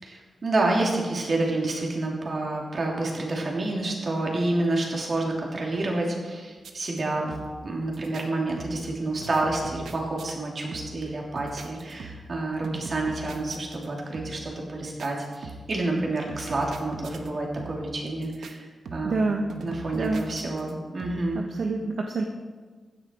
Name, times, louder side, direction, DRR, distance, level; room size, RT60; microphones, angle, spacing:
voice 1, 0.0-7.4 7.6-19.2 19.6-21.4, right 2 dB, 50° right, -1 dB, 3.2 m, -29 dB
sound 1, 6.6-7.0 7.3-7.7 7.9-8.2 8.6-9.0 9.2-10.3 10.7-11.1 11.4-12.4 12.6-13.9 14.1-14.5 15.0-15.8 16.3-17.3 17.6-18.0 18.2-18.5 18.9-19.2 19.5-20.7 21.0-21.4, right 3 dB, 90° right, 1.0 m, -41 dB
voice 2, 19.0-19.5 19.9-20.2 21.3-22.2, right 3 dB, 70° right, 2 dB, 1.1 m, -27 dB
15.5 x 10.0 x 4.7 m, 1.4 s
cardioid pair, 90°, 0 cm